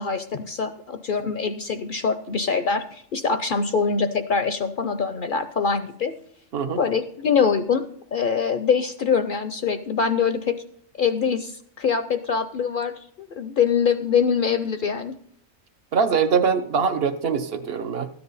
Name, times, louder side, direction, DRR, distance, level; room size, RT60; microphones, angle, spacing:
voice 1, 0.0-6.1 6.8-7.9 8.1-10.6 11.0-12.9 13.2-15.1, left 6 dB, 55° left, 10 dB, 0.6 m, -24 dB
voice 2, 15.9-18.1, right 6 dB, 60° right, 9 dB, 0.8 m, -23 dB
13.5 x 9.6 x 4.0 m, 0.65 s
omnidirectional pair, 1.3 m